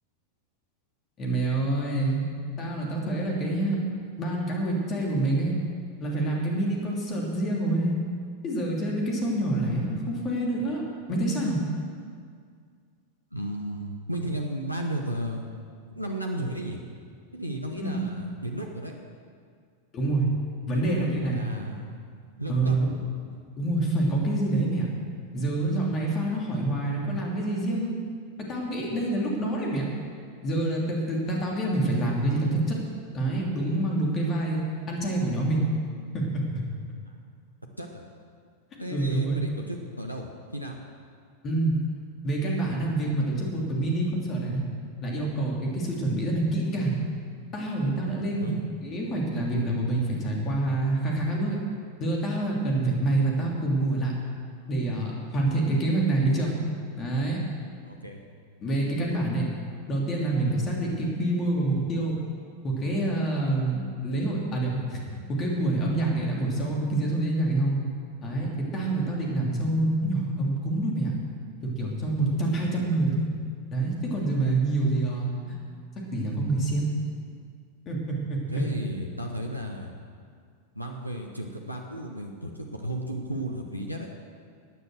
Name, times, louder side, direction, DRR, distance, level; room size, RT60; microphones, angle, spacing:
voice 1, 1.2-2.2 2.6-3.8 4.2-5.6 6.0-7.9 8.4-10.8 11.1-11.6 17.8-18.0 19.9-20.3 20.7-21.4 22.5-22.9 23.6-24.9 25.3-27.9 28.4-29.8 30.4-32.8 33.1-35.7 36.1-36.4 38.9-39.4 41.4-41.8 42.2-44.6 45.0-47.0 47.5-48.5 48.8-51.6 52.0-54.1 54.7-56.6 57.0-57.4 58.6-59.5 59.9-62.2 62.6-65.0 65.3-67.8 68.2-71.1 71.6-73.3 73.7-75.6 76.1-76.9 77.9-78.6, right 2 dB, 30° left, -2 dB, 3.0 m, -26 dB
voice 2, 13.3-15.5 15.9-16.8 17.3-18.9 20.7-21.8 22.4-22.8 37.1-37.2 37.8-38.0 38.8-40.8 48.4-48.6 57.8-58.2 72.7-72.9 78.5-79.9 80.7-84.1, right 1 dB, 90° right, 1 dB, 1.2 m, -34 dB
15.5 x 9.6 x 6.5 m, 2.1 s
figure-of-eight pair, 90°, 0 cm